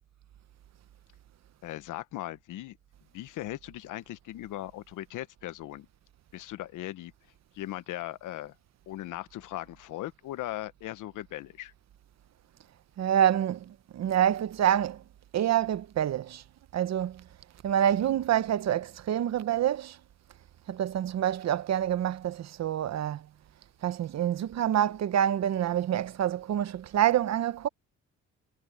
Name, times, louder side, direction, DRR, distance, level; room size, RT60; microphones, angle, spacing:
voice 1, 1.6-2.8 3.1-5.9 6.3-7.1 7.5-8.5 8.9-11.7, left 14 dB, 85° left, 1.1 m, -38 dB
voice 2, 13.0-15.0 15.3-16.4 16.7-17.2 17.6-20.0 20.7-23.3 23.8-27.7, right 10 dB, 60° right, 1.0 m, -27 dB
cardioid pair, 90°, 30 cm